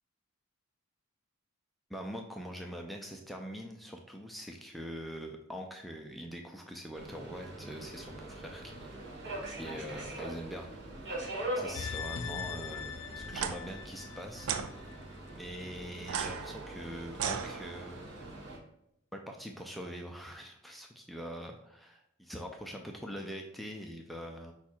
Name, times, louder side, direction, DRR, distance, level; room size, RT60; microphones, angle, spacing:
voice 1, 1.9-8.9 9.5-10.7 11.6-14.5 15.3-18.1 19.1-24.5, equal, ahead, 2 dB, 0.3 m, -43 dB
Subway metro underground, 6.9-18.6, right 1 dB, 55° right, 0.9 m, -43 dB
sound 1, 11.7-15.0 15.3-15.4, left 7 dB, 75° left, 0.4 m, -41 dB
sound 2, 13.3-13.5 14.4-14.7 16.0-18.0, right 7 dB, 85° right, 0.4 m, -36 dB
4.6 x 2.4 x 4.3 m, 0.78 s
head